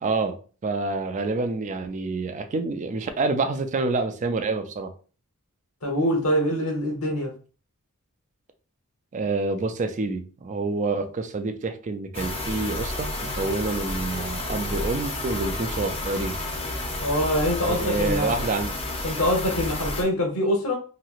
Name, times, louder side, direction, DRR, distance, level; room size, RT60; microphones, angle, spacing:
voice 1, 0.0-0.4 0.6-4.9 9.1-16.4 17.7-18.7, right 3 dB, 35° right, 0.4 m, -27 dB
voice 2, 5.8-7.3 17.0-18.3 19.0-20.7, equal, 75° left, 1.0 m, -24 dB
sound 1, 12.1-20.0, left 2 dB, 25° left, 0.6 m, -30 dB
3.1 x 2.7 x 2.4 m
head